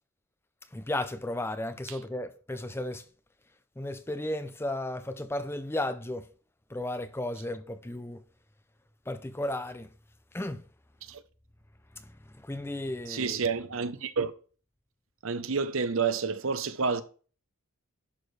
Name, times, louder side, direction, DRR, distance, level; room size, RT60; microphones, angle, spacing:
voice 1, 0.7-3.0 3.8-6.3 6.7-8.2 9.1-9.9 10.3-10.6 12.4-13.4, left 1 dB, 10° left, 0.5 m, -34 dB
voice 2, 13.1-14.3 15.2-17.0, right 5 dB, 65° right, 0.8 m, -29 dB
11.0 x 6.6 x 3.3 m
head